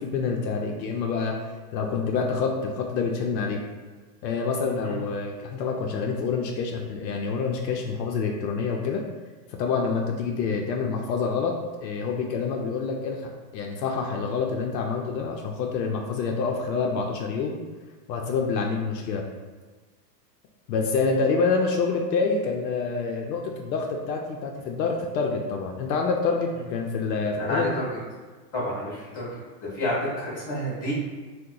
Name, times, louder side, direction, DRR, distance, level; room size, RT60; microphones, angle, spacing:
voice 1, 0.0-1.3 1.7-3.6 4.2-9.0 9.6-11.5 11.8-17.6 18.1-19.2 20.7-27.7, left 4 dB, 80° left, 1 dB, 0.6 m, -27 dB
voice 2, 27.4-27.9 28.5-29.3 29.7-30.9, equal, 15° left, -17 dB, 0.4 m, -29 dB
2.8 x 2.1 x 3.7 m, 1.4 s
supercardioid pair, 170°, 50 cm